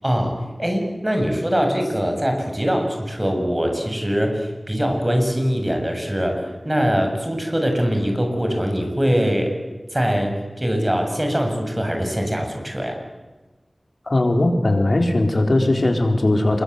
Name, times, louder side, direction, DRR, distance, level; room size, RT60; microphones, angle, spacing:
voice 1, 0.0-9.5 9.9-13.0, equal, 20° right, 4 dB, 7.4 m, -22 dB
voice 2, 14.1-16.6, left 2 dB, 65° left, 4 dB, 4.1 m, -19 dB
27.5 x 23.0 x 8.2 m, 1.2 s
wide cardioid pair, 50°, 0 cm